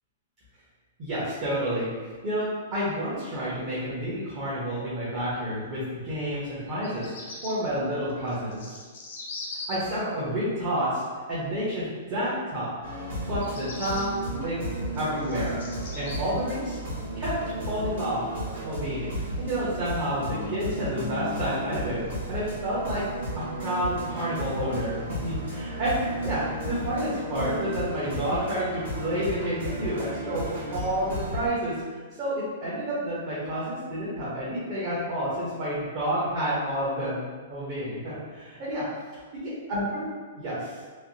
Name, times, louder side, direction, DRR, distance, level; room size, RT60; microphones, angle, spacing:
voice 1, 1.0-1.9 2.2-7.1 7.4-8.8 9.7-11.0 11.3-12.7 13.3-14.6 14.9-15.6 15.9-16.8 17.1-17.4 17.7-23.0 23.3-26.0 26.2-30.4 30.7-31.7 32.2-37.2 37.5-38.8 39.3-40.1 40.4-40.8, equal, 35° right, -9 dB, 0.8 m, -30 dB
Bird vocalization bird call bird song, 6.7-7.5 8.3-9.8 13.3-14.0 14.7-16.2, left 3 dB, 70° left, 0.7 m, -39 dB
sound 1, 12.8-31.5, right 1 dB, 65° right, 1.3 m, -34 dB
3.3 x 2.1 x 2.7 m, 1.4 s
hypercardioid pair, 160°, 0 cm